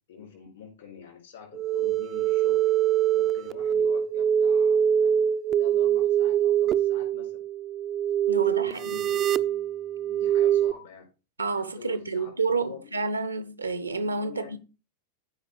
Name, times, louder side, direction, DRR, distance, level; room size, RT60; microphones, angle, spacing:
voice 1, 0.1-2.6 3.1-5.1 5.6-7.4 8.3-9.4 10.1-11.1 11.6-12.3 12.6-12.9 13.8-14.6, left 7 dB, 65° left, 4.2 m, -46 dB
sound 1, 1.5-10.7, right 9 dB, 30° right, 0.4 m, -24 dB
voice 2, 8.3-9.0 11.4-14.6, right 4 dB, 80° right, 0.8 m, -29 dB
14.5 x 4.9 x 3.2 m
figure-of-eight pair, 90°, 0 cm